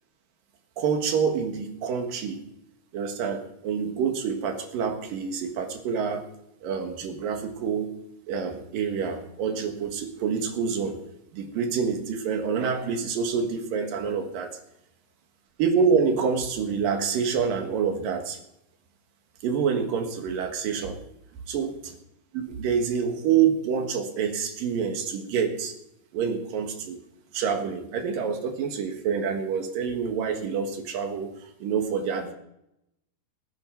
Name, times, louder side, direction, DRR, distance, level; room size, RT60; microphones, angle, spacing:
voice 1, 0.8-2.4 2.9-6.3 6.6-7.9 8.3-11.0 11.3-14.6 15.6-18.4 19.4-21.0 21.5-21.7 22.3-25.7 26.1-27.0 27.3-32.3, right 6 dB, 60° right, 4 dB, 2.9 m, -27 dB
20.5 x 9.7 x 4.7 m, 0.83 s
omnidirectional pair, 5.0 m